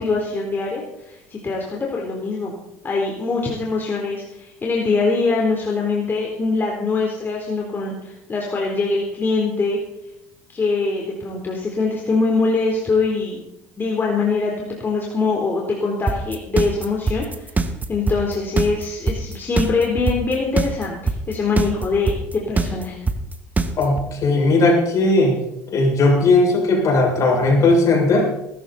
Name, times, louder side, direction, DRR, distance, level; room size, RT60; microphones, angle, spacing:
voice 1, 0.0-2.5 2.8-9.8 10.5-13.4 13.8-23.0, left 4 dB, 30° left, -1 dB, 3.8 m, -23 dB
sound 1, 16.1-24.0, right 3 dB, 20° right, 1.8 m, -21 dB
voice 2, 23.8-25.4 25.7-28.3, left 2 dB, 50° left, 0 dB, 7.5 m, -17 dB
21.0 x 13.5 x 4.3 m, 0.85 s
hypercardioid pair, 70°, 7 cm